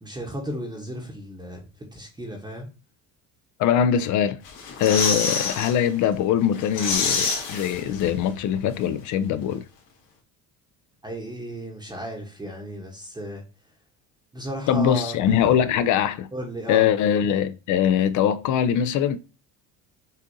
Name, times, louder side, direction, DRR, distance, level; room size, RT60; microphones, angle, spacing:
voice 1, 0.0-1.6 1.9-2.7 11.0-13.4 14.3-15.1 15.4-15.5 16.3-16.9, equal, 10° right, 0.9 m, -34 dB
voice 2, 3.6-4.4 4.8-9.6 14.7-16.3 16.7-19.2, left 9 dB, 50° left, 0.4 m, -22 dB
sound 1, 4.4-5.7 6.1-6.2 6.5-8.3 8.5-8.6, left 4 dB, 70° left, 1.8 m, -26 dB
6.4 x 2.5 x 2.6 m
supercardioid pair, 110°, 38 cm